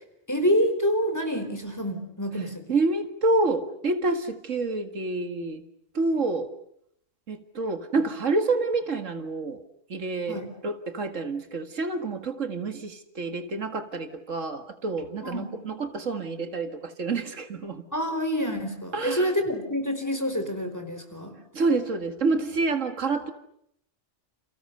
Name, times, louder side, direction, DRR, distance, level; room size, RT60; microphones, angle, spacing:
voice 1, 0.3-2.6 10.3-10.5 15.2-15.5 17.9-21.4, equal, 15° left, 7 dB, 4.3 m, -27 dB
voice 2, 2.7-5.6 5.9-6.5 7.3-9.6 9.9-17.9 18.9-19.3 21.5-23.3, right 3 dB, 85° right, 8 dB, 2.3 m, -28 dB
29.5 x 29.5 x 6.8 m, 0.72 s
omnidirectional pair, 1.3 m